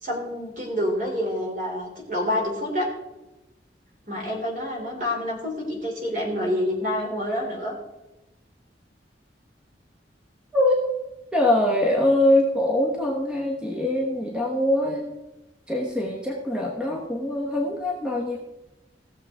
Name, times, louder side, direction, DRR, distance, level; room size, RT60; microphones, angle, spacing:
voice 1, 0.0-2.9 4.1-7.7, left 1 dB, 45° right, 0 dB, 3.2 m, -27 dB
voice 2, 10.5-10.9 11.3-15.1 15.7-18.4, left 1 dB, 5° right, -2 dB, 1.1 m, -23 dB
17.0 x 7.1 x 3.6 m, 1.0 s
head